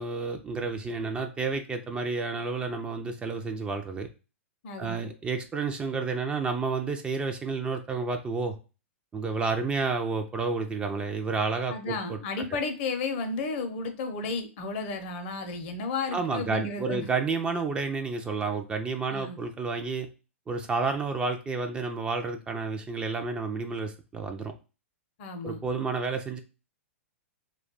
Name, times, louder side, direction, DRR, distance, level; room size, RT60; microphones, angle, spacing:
voice 1, 0.0-4.1 4.8-8.6 9.1-12.2 16.1-20.1 20.5-24.5 25.4-26.4, right 4 dB, 15° right, 0.3 m, -30 dB
voice 2, 4.6-5.0 11.7-17.0 19.1-19.4 25.2-25.6, left 4 dB, 50° left, 0.6 m, -33 dB
2.3 x 2.2 x 3.9 m
figure-of-eight pair, 110°, 7 cm